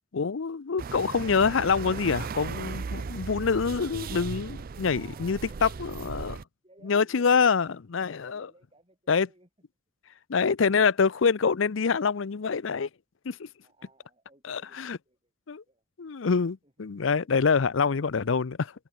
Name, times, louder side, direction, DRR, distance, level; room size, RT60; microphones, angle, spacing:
voice 1, 0.1-6.4 6.8-8.5 9.1-9.3 10.3-12.9 13.2-13.5 14.5-15.0 15.5-15.6 16.0-18.7, left 5 dB, 70° left, 0.6 m, -26 dB
sound 1, 0.8-6.4, right 5 dB, 45° right, 0.4 m, -37 dB
voice 2, 4.8-9.5 13.6-15.3 15.7-15.8 16.6-17.9, right 2 dB, 25° right, 7.5 m, -59 dB
head